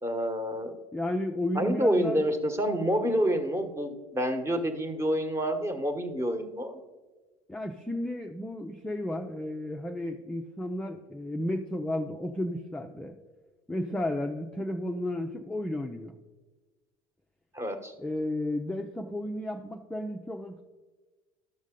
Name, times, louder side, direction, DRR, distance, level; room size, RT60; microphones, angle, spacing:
voice 1, 0.0-0.8 1.5-6.8 17.5-17.9, equal, 15° right, 7 dB, 1.2 m, -28 dB
voice 2, 0.9-2.2 7.5-13.2 13.7-16.1 18.0-20.6, left 1 dB, 5° left, 3 dB, 0.5 m, -33 dB
12.0 x 6.2 x 3.7 m, 1.3 s
hypercardioid pair, 75°, 18 cm